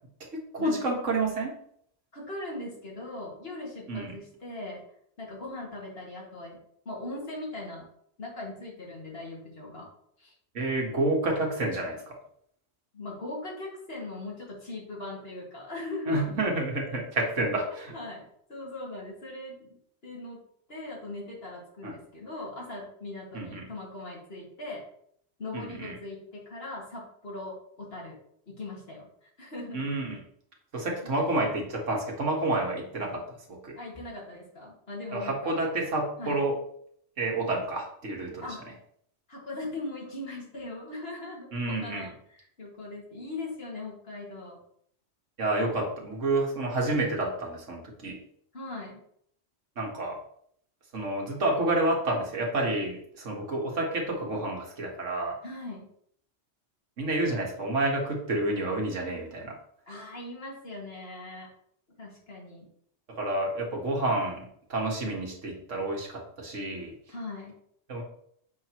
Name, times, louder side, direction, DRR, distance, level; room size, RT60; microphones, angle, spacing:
voice 1, 0.3-1.6 3.9-4.1 10.5-12.1 16.1-17.9 21.8-21.9 23.3-23.6 25.5-26.0 29.7-30.2 30.7-33.2 33.5-33.8 35.1-36.6 37.2-38.5 41.5-42.1 45.4-48.2 49.8-50.2 50.9-55.4 57.0-59.6 63.1-66.9 67.9-68.0, right 2 dB, 90° right, 0 dB, 2.0 m, -29 dB
voice 2, 2.1-4.8 5.2-6.6 6.9-7.9 8.2-9.9 10.2-10.3 12.9-16.4 17.7-18.2 18.5-19.8 20.0-20.4 20.7-24.8 25.4-28.2 28.5-29.9 31.0-31.1 33.8-35.6 36.2-36.5 38.4-38.6 39.3-44.6 48.5-49.0 55.4-55.9 59.9-61.5 62.0-62.7 67.1-67.6, left 2 dB, 55° left, -3 dB, 2.4 m, -40 dB
7.4 x 5.9 x 3.0 m, 0.67 s
omnidirectional pair, 1.2 m